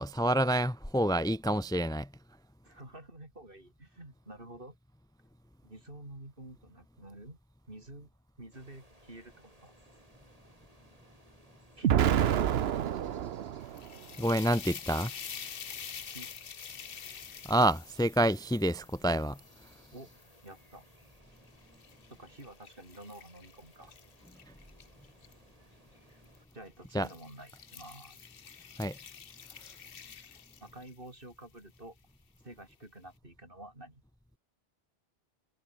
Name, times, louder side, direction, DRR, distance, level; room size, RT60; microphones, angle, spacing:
voice 1, 0.0-2.1 14.2-15.1 17.4-19.4 26.9-27.1 28.8-29.0, right 1 dB, 5° left, 0.8 m, -28 dB
voice 2, 2.6-4.7 5.6-7.4 7.7-8.1 8.4-9.7 11.8-12.4 16.1-16.3 19.9-20.1 20.4-20.9 22.1-23.9 26.5-28.3 30.6-32.0 32.4-34.0, right 1 dB, 55° right, 6.4 m, -49 dB
sound 1, 8.5-26.5, right 1 dB, 35° right, 7.7 m, -62 dB
Explosion, 11.8-14.0, right 10 dB, 75° right, 1.0 m, -28 dB
sound 2, 13.6-20.8 21.4-25.3 26.2-26.5 26.9-31.1, left 7 dB, 60° left, 1.2 m, -47 dB
omnidirectional pair, 1.1 m